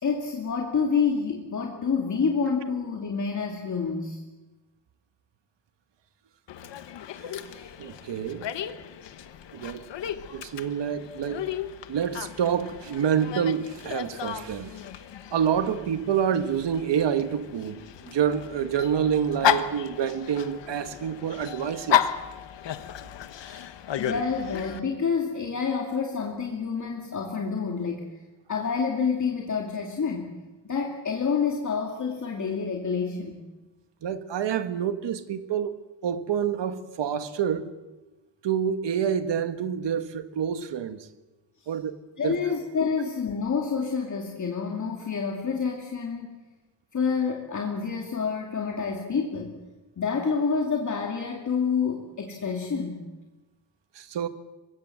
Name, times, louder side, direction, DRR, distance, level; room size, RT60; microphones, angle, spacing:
voice 1, 0.0-4.2 24.0-28.1 28.5-30.3 30.7-33.4 42.2-46.3 46.9-49.5 50.0-53.0, left 5 dB, 45° left, 2.6 m, -28 dB
Dog, 6.5-24.8, left 10 dB, 85° left, 1.3 m, -33 dB
voice 2, 7.8-8.5 9.5-9.9 10.3-11.4 11.9-14.8 15.3-22.1 34.0-35.8 36.0-37.7 38.4-41.1 41.7-42.0 42.2-42.4 53.9-54.3, right 8 dB, 80° right, 1.6 m, -27 dB
25.0 x 21.0 x 7.9 m
wide cardioid pair, 145°, 42 cm